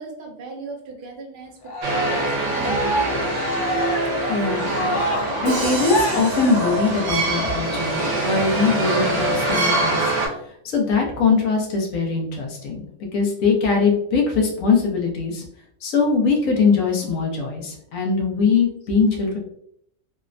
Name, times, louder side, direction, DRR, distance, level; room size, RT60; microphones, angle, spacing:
voice 1, 0.0-1.6 1.9-3.2, right 2 dB, 50° right, 1 dB, 0.6 m, -36 dB
Cheering, 1.6-7.1, equal, 70° left, 0.5 m, -27 dB
sound 1, 1.8-10.3, right 2 dB, 65° right, 1.0 m, -24 dB
voice 2, 4.3-4.9 5.4-10.0 10.6-12.8 13.1-15.4 15.8-19.4, left 4 dB, 90° left, 1 dB, 1.1 m, -21 dB
Crash cymbal, 5.5-7.7, right 3 dB, 90° right, 1.1 m, -32 dB
3.3 x 2.0 x 2.5 m, 0.70 s
omnidirectional pair, 1.4 m